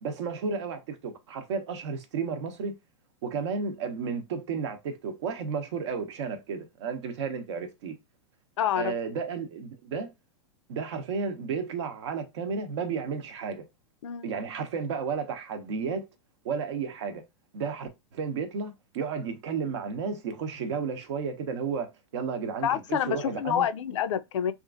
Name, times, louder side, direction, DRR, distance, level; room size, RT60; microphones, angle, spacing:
voice 1, 0.0-2.8 3.2-8.0 8.8-10.1 10.7-13.6 14.2-16.1 16.4-17.2 17.5-23.7, right 5 dB, 65° right, 0.7 m, -32 dB
voice 2, 8.6-8.9 14.0-14.3 22.6-24.5, left 9 dB, 70° left, 0.4 m, -27 dB
2.9 x 2.5 x 2.4 m
hypercardioid pair, 115°, 16 cm